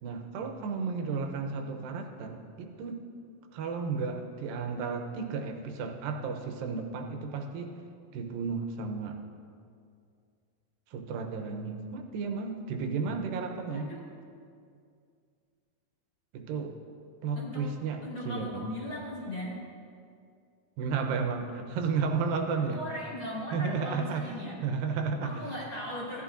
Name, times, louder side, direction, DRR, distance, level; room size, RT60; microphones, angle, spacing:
voice 1, 0.0-3.0 3.5-7.7 8.1-9.2 10.9-13.9 16.3-16.7 17.2-18.0 18.3-18.7 20.8-22.8 23.5-25.3, right 5 dB, 80° right, 4 dB, 2.5 m, -33 dB
voice 2, 13.6-14.1 17.4-17.7 18.0-19.7 22.5-24.6 25.2-26.2, left 1 dB, 50° left, -7 dB, 1.6 m, -38 dB
16.0 x 11.5 x 2.5 m, 2.3 s
omnidirectional pair, 4.1 m